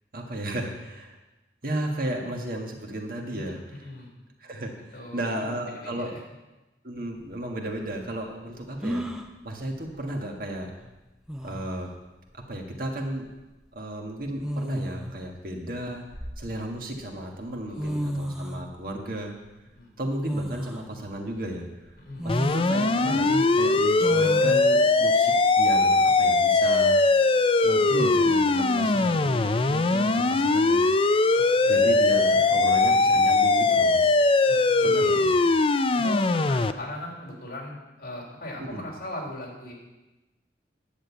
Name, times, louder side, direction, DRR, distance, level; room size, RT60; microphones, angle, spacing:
voice 1, 0.1-1.2 1.6-3.6 4.4-4.8 5.1-6.2 6.8-9.1 9.4-10.7 11.4-11.9 12.3-13.3 13.7-16.1 16.4-19.4 20.0-21.7 22.2-27.0 27.6-30.8 31.7-34.2 34.8-35.3 38.6-38.8, right 1 dB, 55° right, 1 dB, 1.7 m, -34 dB
voice 2, 3.3-4.1 4.9-6.2 17.7-18.0 19.7-19.9 22.0-22.3 31.4-31.9 34.5-35.1 35.9-39.7, left 1 dB, 55° left, -2 dB, 3.7 m, -39 dB
sound 1, 7.2-7.3 8.8-9.3 10.8-10.9 11.3-11.8 13.1-13.3 14.4-15.2 15.8-16.8 17.5-17.6 17.8-18.6 20.3-20.9 21.4-21.5 22.2-22.7 24.0-24.6, equal, 5° right, 0.7 m, -32 dB
sound 2, 22.3-36.7, left 3 dB, 30° left, 0.4 m, -21 dB
10.5 x 6.4 x 8.5 m, 1.1 s
head